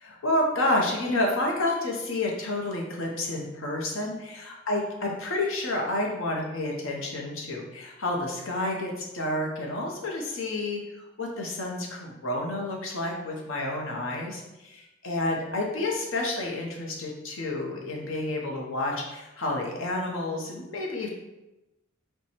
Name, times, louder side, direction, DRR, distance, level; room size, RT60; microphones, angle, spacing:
voice 1, 0.0-10.8 11.2-21.1, left 2 dB, 65° left, 0 dB, 0.9 m, -30 dB
4.6 x 2.3 x 4.2 m, 1.0 s
head